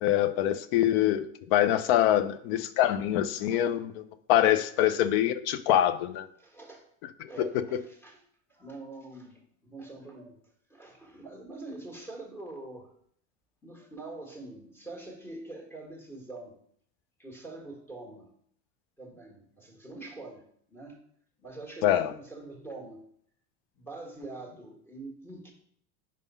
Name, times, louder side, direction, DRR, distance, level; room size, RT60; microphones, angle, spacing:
voice 1, 0.0-4.0 4.3-6.3 7.2-7.8 21.8-22.1, left 11 dB, 85° left, 13 dB, 0.6 m, -25 dB
voice 2, 3.4-3.7 6.4-6.9 7.3-8.2 8.5-10.4 10.7-12.9 13.6-16.6 17.2-18.3 19.0-21.0 21.4-23.1 23.7-25.5, right 2 dB, 5° left, -1 dB, 1.4 m, -44 dB
5.1 x 3.7 x 5.5 m, 0.65 s
supercardioid pair, 120°, 34 cm